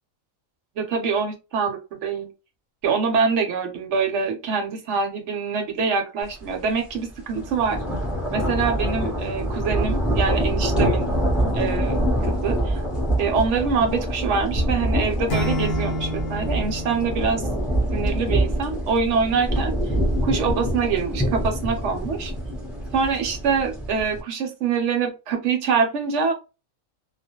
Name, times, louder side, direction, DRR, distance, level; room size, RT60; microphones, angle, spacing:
voice 1, 0.8-2.3 2.8-7.8 8.3-11.1 11.5-12.8 13.2-17.4 17.9-19.7 20.2-22.3 22.9-26.3, right 5 dB, 65° right, 5 dB, 0.9 m, -25 dB
sound 1, 6.4-6.6 6.9-24.2, right 1 dB, ahead, 0.4 m, -25 dB
Acoustic guitar / Strum, 15.3-18.4, left 1 dB, 65° left, 0.6 m, -30 dB
2.3 x 2.0 x 2.8 m, 0.29 s
omnidirectional pair, 1.4 m